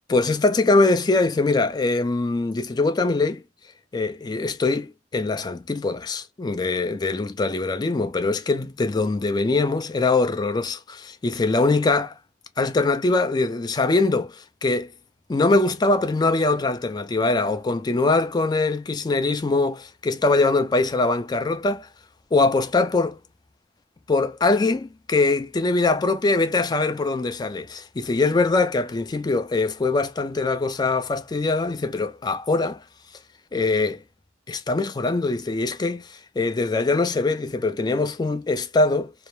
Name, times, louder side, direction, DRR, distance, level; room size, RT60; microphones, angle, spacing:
voice 1, 0.1-3.4 3.9-12.1 12.6-14.9 15.3-21.9 22.3-23.2 24.1-32.8 33.5-34.0 34.5-39.1, left 3 dB, 20° left, 0.3 m, -22 dB
2.0 x 2.0 x 2.9 m
head